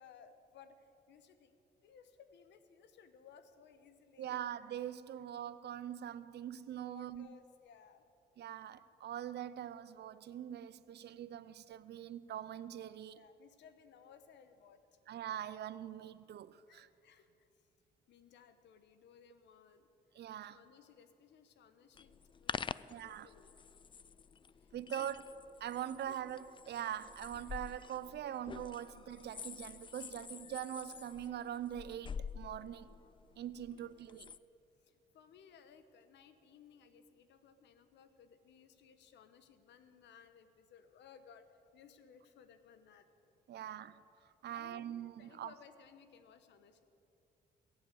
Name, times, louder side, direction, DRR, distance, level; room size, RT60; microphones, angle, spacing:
voice 1, 0.0-4.4 6.8-8.1 9.5-9.6 13.1-14.8 16.7-17.7 18.1-23.6 24.6-25.1 26.0-26.2 33.7-34.2 34.8-43.1 43.5-43.7 44.5-44.9 45.2-46.8, left 7 dB, 80° left, 1.1 m, -61 dB
voice 2, 4.2-7.3 8.4-13.2 15.1-16.9 20.1-20.6 22.9-23.3 24.7-25.2 25.6-32.9 33.4-34.3 43.5-44.0 44.4-45.5, right 10 dB, 70° right, 0.6 m, -43 dB
sound 1, 22.0-34.4, left 6 dB, 30° left, 0.3 m, -48 dB
20.5 x 7.9 x 7.9 m
cardioid pair, 75°, 18 cm